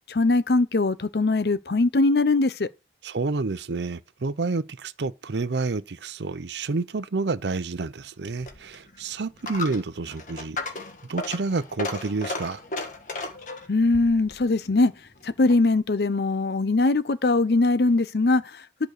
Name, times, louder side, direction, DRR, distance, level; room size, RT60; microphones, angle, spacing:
voice 1, 0.1-2.7 13.7-14.9 15.2-18.9, left 2 dB, 65° left, 0.7 m, -21 dB
voice 2, 3.0-10.6 11.1-12.6, right 3 dB, 80° right, 0.6 m, -29 dB
Coin (dropping), 8.3-15.8, left 2 dB, 45° left, 1.5 m, -36 dB
11.0 x 5.2 x 6.6 m
head